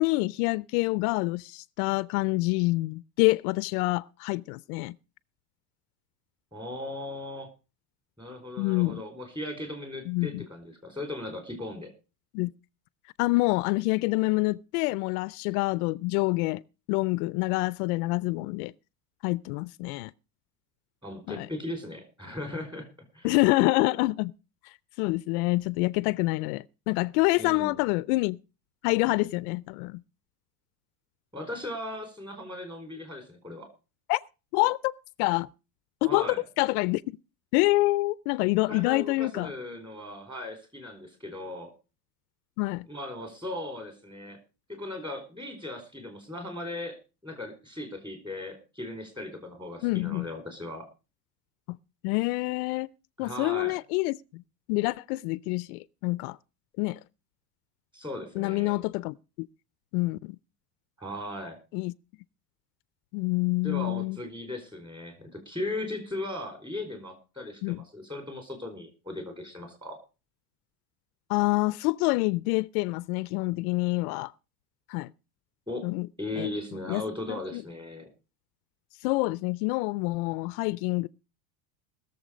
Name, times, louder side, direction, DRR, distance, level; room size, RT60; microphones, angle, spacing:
voice 1, 0.0-4.9 8.6-9.0 10.1-10.4 12.3-12.5 13.2-16.6 16.9-18.7 19.2-20.1 21.3-21.5 23.2-24.3 24.6-28.4 28.8-30.0 34.1-34.2 34.5-34.9 35.2-35.5 36.0-37.0 37.5-39.5 42.6-42.9 49.8-50.3 51.7-51.8 52.0-52.9 53.2-54.4 54.7-56.4 56.8-57.0 58.4-59.5 59.9-60.4 61.7-61.9 63.1-64.2 67.6-67.8 71.3-74.3 74.9-75.1 75.8-76.1 76.4-76.5 76.9-77.0 77.3-77.6 79.0-81.1, left 23 dB, 75° left, 0.6 m, -27 dB
voice 2, 6.5-7.5 8.2-11.9 21.0-22.9 23.1-23.3 27.4-27.8 31.3-33.7 36.0-36.4 38.7-41.7 42.9-44.4 44.7-47.0 47.2-50.9 53.2-53.7 57.9-58.7 61.0-61.6 63.6-70.0 75.7-75.9 76.2-78.1, left 1 dB, 10° right, 4.4 m, -37 dB
20.0 x 7.2 x 5.1 m
cardioid pair, 145°, 45 cm